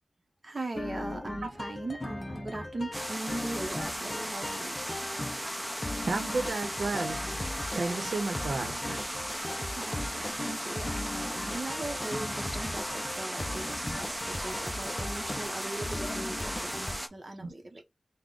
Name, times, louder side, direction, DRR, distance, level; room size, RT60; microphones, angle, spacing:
voice 1, 0.4-4.8 9.7-17.8, right 2 dB, 40° right, 0.7 m, -39 dB
sound 1, 0.7-17.0, left 2 dB, 25° left, 0.4 m, -39 dB
sound 2, 2.9-17.1, equal, 5° right, 0.7 m, -36 dB
voice 2, 6.0-7.2 7.5-9.0 10.1-10.5 17.4-17.5, right 3 dB, 85° right, 0.7 m, -33 dB
3.6 x 2.1 x 3.7 m
wide cardioid pair, 95°, 0 cm